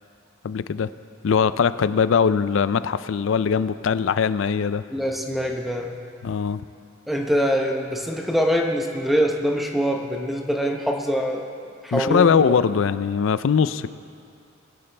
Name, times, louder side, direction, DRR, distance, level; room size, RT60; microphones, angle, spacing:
voice 1, 0.4-0.9 1.2-4.8 6.2-6.6 11.9-13.9, left 6 dB, 70° left, 15 dB, 0.4 m, -21 dB
voice 2, 4.9-6.0 7.1-11.5 11.8-12.5, equal, ahead, 1 dB, 0.8 m, -24 dB
21.0 x 11.0 x 3.3 m, 2.4 s
head